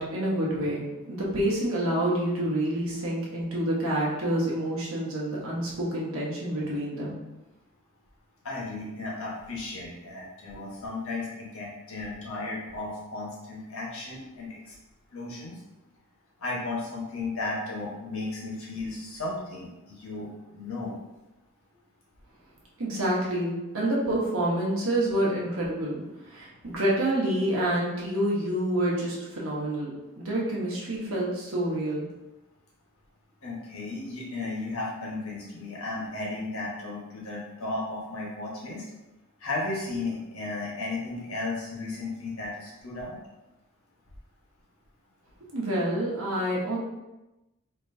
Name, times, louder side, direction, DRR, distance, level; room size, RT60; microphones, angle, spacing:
voice 1, 0.0-7.2 22.8-29.9 30.2-32.0 45.5-46.8, right 1 dB, 85° right, -5 dB, 1.1 m, -28 dB
voice 2, 8.4-14.7 15.1-15.6 16.4-20.9 33.4-38.8 39.4-43.2, left 2 dB, 80° left, -4 dB, 1.2 m, -34 dB
4.4 x 2.9 x 2.7 m, 1.0 s
head